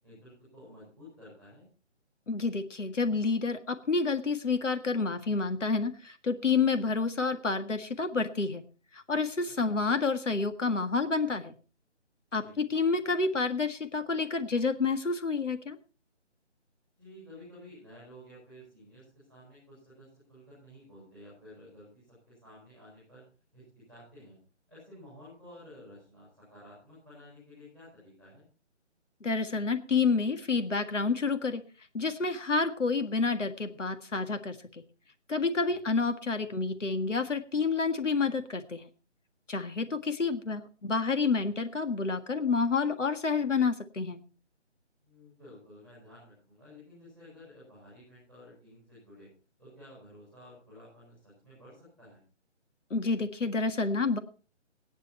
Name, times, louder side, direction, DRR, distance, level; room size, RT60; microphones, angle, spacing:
voice 1, 0.0-1.7 12.4-12.5 17.0-23.2 23.5-23.6 23.9-24.4 24.7-28.4 35.9-36.0 45.0-49.3 49.6-52.2, left 1 dB, 10° left, -11 dB, 6.6 m, -52 dB
voice 2, 2.3-8.6 8.9-11.5 12.3-15.8 29.2-31.6 31.9-34.6 35.3-38.9 39.5-44.2 52.9-54.2, left 4 dB, 85° left, 8 dB, 1.8 m, -29 dB
18.0 x 10.0 x 4.5 m, 0.37 s
hypercardioid pair, 180°, 36 cm